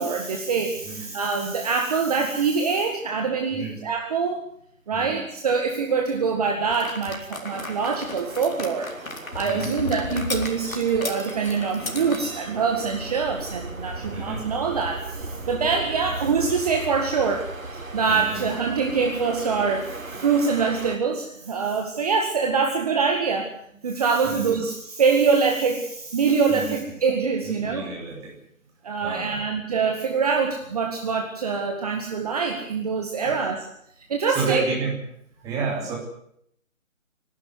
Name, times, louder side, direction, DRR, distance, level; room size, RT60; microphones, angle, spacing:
voice 1, 0.0-4.4 4.9-17.5 17.7-23.5 23.8-27.8 28.8-33.5 34.1-34.6, right 5 dB, 30° right, 3 dB, 2.0 m, -24 dB
voice 2, 3.5-3.8 4.9-5.2 5.9-6.1 9.4-9.7 14.0-14.5 18.1-18.5 24.2-24.6 26.5-26.9 27.4-28.3 29.0-29.4 33.2-33.4 34.3-35.0 35.4-36.0, right 4 dB, 10° right, -2 dB, 3.3 m, -31 dB
sound 1, 6.7-12.2, left 2 dB, 85° left, 4.2 m, -34 dB
sound 2, 7.4-21.0, right 2 dB, 85° right, 4.0 m, -37 dB
26.5 x 12.0 x 9.5 m, 0.72 s
figure-of-eight pair, 165°, 40 cm